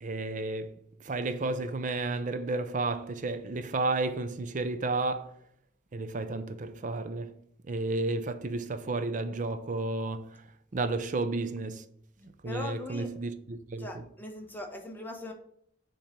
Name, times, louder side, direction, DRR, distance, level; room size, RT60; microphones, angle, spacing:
voice 1, 0.0-0.8 1.0-5.3 5.9-7.3 7.7-10.4 10.7-11.8 12.2-14.0, right 2 dB, 45° right, 0.5 m, -32 dB
voice 2, 12.4-13.1 13.8-15.3, left 1 dB, 10° left, 1.0 m, -40 dB
7.3 x 3.0 x 5.1 m
head